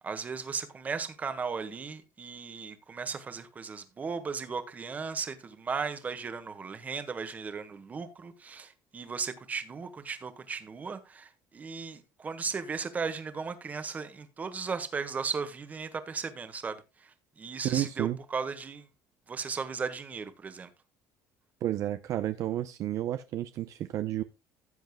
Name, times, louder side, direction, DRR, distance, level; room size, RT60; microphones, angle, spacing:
voice 1, 0.0-18.9 19.3-20.7, right 5 dB, 20° right, 1.5 m, -36 dB
voice 2, 17.6-18.2 21.6-24.2, right 12 dB, 50° right, 0.6 m, -31 dB
16.0 x 7.8 x 2.2 m
cardioid pair, 155°, 7 cm